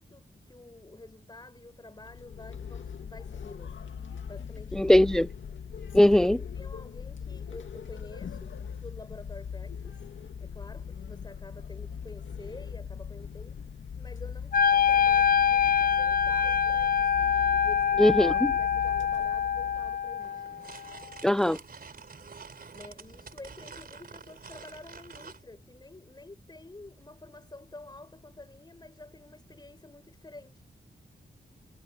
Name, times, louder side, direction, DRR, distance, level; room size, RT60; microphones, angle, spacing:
voice 1, 0.0-3.8 4.2-4.9 5.8-10.0 10.4-13.7 13.9-17.3 17.6-18.2 18.6-20.6 22.7-30.6, left 2 dB, 20° left, 6.1 m, -49 dB
sound 1, 1.9-20.2, left 7 dB, 85° left, 2.0 m, -40 dB
voice 2, 4.7-5.3 5.9-6.4 18.0-18.5 21.2-21.6, left 1 dB, 5° left, 0.5 m, -20 dB
Wind instrument woodwind instrument, 14.5-20.6, left 8 dB, 50° left, 0.7 m, -25 dB
sound 2, 20.2-25.4, right 5 dB, 50° right, 3.7 m, -48 dB
wide cardioid pair, 130°, 19 cm